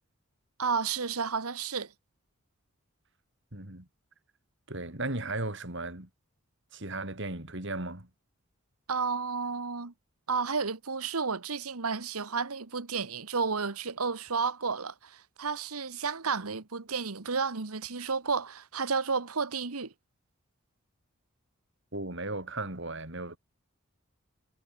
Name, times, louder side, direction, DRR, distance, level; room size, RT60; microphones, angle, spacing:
voice 1, 0.6-1.9 8.9-9.9 10.3-19.9, right 5 dB, 90° right, 1.4 m, -32 dB
voice 2, 3.5-3.9 4.7-6.1 6.7-8.1 21.9-23.4, right 2 dB, 55° right, 3.7 m, -36 dB
head